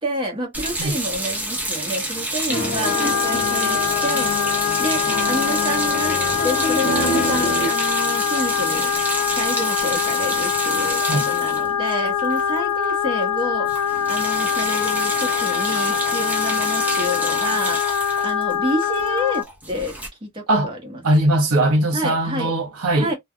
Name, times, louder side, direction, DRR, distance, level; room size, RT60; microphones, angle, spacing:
voice 1, 0.0-4.3 4.8-8.9 9.3-20.0 20.2-21.0 21.9-22.5 22.9-23.1, equal, 25° right, 1.1 m, -29 dB
sound 1, 0.5-12.9 13.2-13.4 13.6-20.1, right 1 dB, 10° right, 0.8 m, -28 dB
sound 2, 2.5-7.7, left 1 dB, 45° left, 0.8 m, -27 dB
sound 3, 2.8-19.4, left 8 dB, 80° left, 0.3 m, -23 dB
voice 2, 21.0-23.1, right 1 dB, 90° right, 0.9 m, -20 dB
3.3 x 2.3 x 2.2 m
head